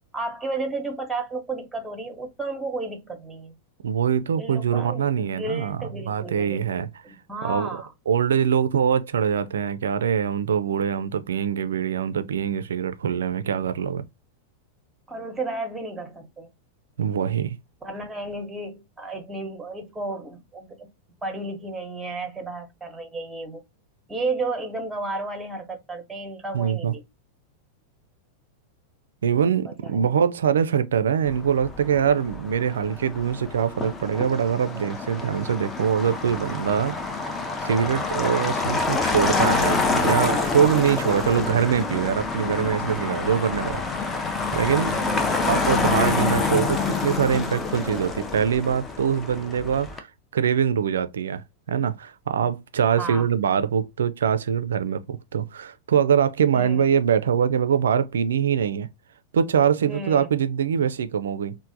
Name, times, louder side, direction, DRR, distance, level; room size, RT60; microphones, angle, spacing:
voice 1, 0.1-3.6 4.4-6.6 7.0-7.9 15.1-16.5 17.8-20.9 21.2-23.6 24.1-27.0 29.6-30.2 40.9-41.2 44.9-45.4 52.9-53.3 56.5-56.8 59.9-60.3, right 3 dB, 5° right, 0.9 m, -33 dB
voice 2, 3.8-6.9 7.4-7.7 8.1-14.0 17.0-17.6 26.5-26.9 29.2-43.8 44.2-45.0 45.5-50.1 50.3-58.9 59.3-61.6, right 8 dB, 65° right, 0.3 m, -23 dB
Motor vehicle (road), 31.2-50.0, left 4 dB, 15° left, 0.5 m, -27 dB
3.1 x 2.1 x 2.6 m
figure-of-eight pair, 90°, 0 cm